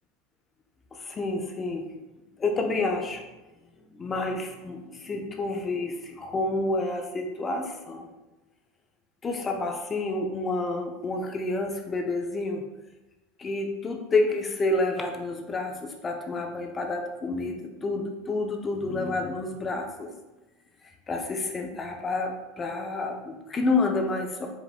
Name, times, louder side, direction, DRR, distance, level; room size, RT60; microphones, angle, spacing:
voice 1, 0.9-1.9 2.4-3.2 3.9-8.1 9.2-12.6 13.4-20.1 21.1-24.5, left 2 dB, 20° left, 4 dB, 0.3 m, -29 dB
4.9 x 3.3 x 2.3 m, 1.1 s
supercardioid pair, 155°, 0 cm